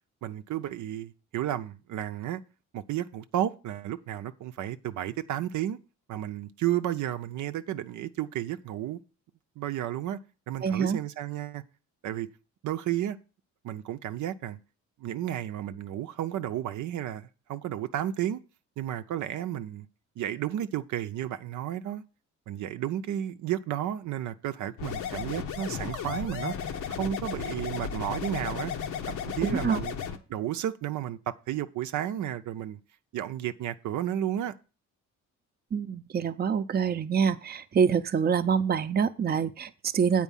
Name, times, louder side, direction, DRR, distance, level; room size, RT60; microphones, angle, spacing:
voice 1, 0.2-2.4 2.7-5.8 6.1-9.0 9.6-10.2 10.5-11.6 12.0-12.3 12.6-13.2 13.6-14.6 15.0-18.4 18.8-19.9 20.2-22.0 22.5-26.6 26.9-28.7 29.1-30.0 30.3-32.8 33.1-34.5, right 11 dB, 75° right, 0.6 m, -32 dB
voice 2, 10.6-11.0 29.4-29.8 35.7-40.2, right 6 dB, 30° right, 0.6 m, -26 dB
sound 1, 24.8-30.2, left 7 dB, 80° left, 1.1 m, -34 dB
8.2 x 4.5 x 7.2 m
cardioid pair, 90°, 30 cm